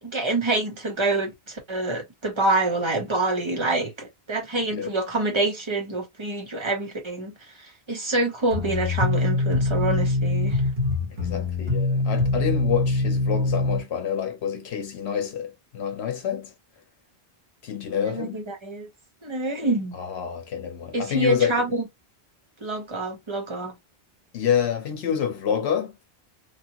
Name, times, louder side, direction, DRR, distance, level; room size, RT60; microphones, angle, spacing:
voice 1, 0.0-10.6 18.1-18.9 19.2-20.0 20.9-21.8 22.6-23.7, right 2 dB, 30° right, 1.0 m, -26 dB
sound 1, 8.5-13.8, left 2 dB, 70° right, 1.6 m, -24 dB
voice 2, 11.1-16.5 17.6-18.4 19.9-21.5 24.3-26.0, left 8 dB, 85° left, 0.9 m, -27 dB
3.1 x 2.3 x 2.8 m
omnidirectional pair, 1.1 m